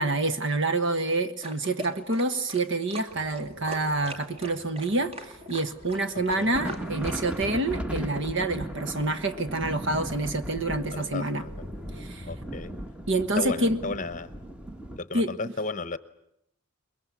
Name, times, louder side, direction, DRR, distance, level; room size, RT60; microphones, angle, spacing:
voice 1, 0.0-11.4 12.0-12.3 13.1-14.0 15.1-15.5, right 2 dB, 55° right, 11 dB, 1.4 m, -27 dB
sound 1, 1.4-7.4, right 1 dB, 25° right, 2.3 m, -41 dB
sound 2, 3.1-12.0, right 1 dB, 85° right, 2.9 m, -50 dB
sound 3, 5.2-5.4 5.8-6.0 6.2-15.0, right 1 dB, 5° right, 1.2 m, -37 dB
voice 2, 6.1-6.5 10.9-11.5 12.3-12.7 13.4-14.3 15.0-16.0, left 3 dB, 35° left, 15 dB, 0.9 m, -34 dB
23.0 x 22.0 x 9.8 m, 0.78 s
head